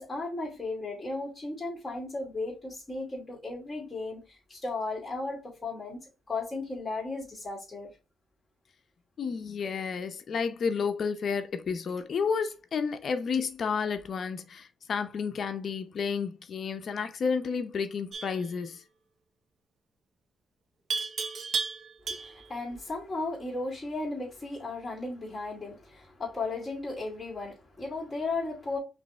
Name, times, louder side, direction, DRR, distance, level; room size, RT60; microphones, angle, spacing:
voice 1, 0.0-6.0 6.3-7.9 22.1-28.8, left 3 dB, 15° left, 2.5 m, -35 dB
voice 2, 9.2-18.8, left 5 dB, 55° left, 0.6 m, -31 dB
Livestock farm animals working animals, 18.1-18.4 20.9-22.5, right 4 dB, 55° right, 0.6 m, -33 dB
5.1 x 3.1 x 3.3 m
cardioid pair, 115°, 0 cm